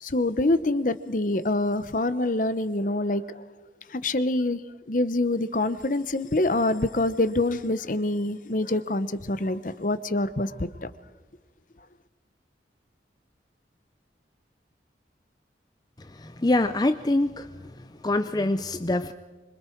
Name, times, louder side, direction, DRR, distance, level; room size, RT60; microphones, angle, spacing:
voice 1, 0.0-3.4 3.9-4.6 4.9-10.9, left 2 dB, 45° left, 13 dB, 0.9 m, -26 dB
voice 2, 16.0-17.5 17.8-19.1, left 2 dB, 20° left, 9 dB, 0.6 m, -25 dB
26.0 x 24.0 x 4.6 m, 1.3 s
head